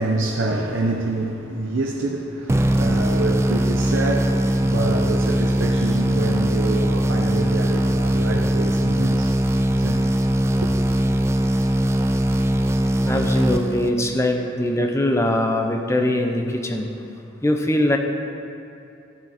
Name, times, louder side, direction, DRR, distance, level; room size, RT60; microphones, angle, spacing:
voice 1, 0.0-9.3 9.7-10.0 10.6-10.7, right 2 dB, 90° right, 0 dB, 0.7 m, -26 dB
sound 1, 2.5-14.2, right 1 dB, 15° right, 0.3 m, -20 dB
voice 2, 13.0-16.9 17.4-18.0, left 1 dB, 15° left, 3 dB, 0.7 m, -21 dB
13.5 x 7.7 x 4.3 m, 2.7 s
head